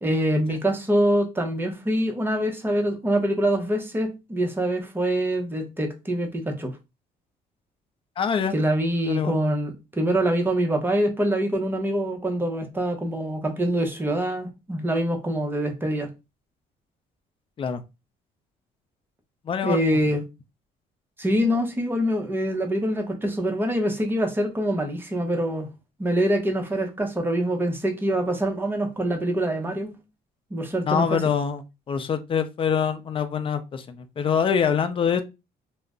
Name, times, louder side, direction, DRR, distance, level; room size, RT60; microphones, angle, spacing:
voice 1, 0.0-6.7 8.5-16.1 19.6-20.2 21.2-25.7 26.0-29.9 30.5-31.2, right 1 dB, 10° right, 0.7 m, -25 dB
voice 2, 8.2-8.6 9.1-9.3 17.6-17.8 19.5-19.8 30.9-31.6 31.9-35.2, left 7 dB, 30° left, 0.4 m, -24 dB
2.4 x 2.1 x 3.5 m
cardioid pair, 110°, 17 cm